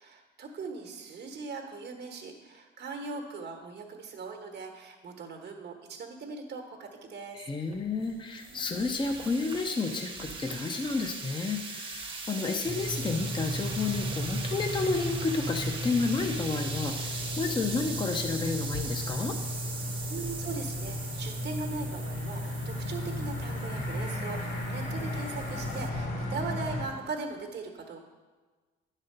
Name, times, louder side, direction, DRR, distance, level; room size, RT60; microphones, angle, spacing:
voice 1, 0.0-7.4 20.1-28.0, right 4 dB, 60° right, 3 dB, 1.2 m, -40 dB
voice 2, 7.3-19.4, left 4 dB, 25° left, 3 dB, 0.7 m, -31 dB
sound 1, 7.7-25.9, right 3 dB, 25° right, 1.0 m, -40 dB
sound 2, 12.6-26.8, left 1 dB, 85° left, 2.4 m, -34 dB
9.8 x 4.1 x 6.6 m, 1.4 s
cardioid pair, 90°, 20 cm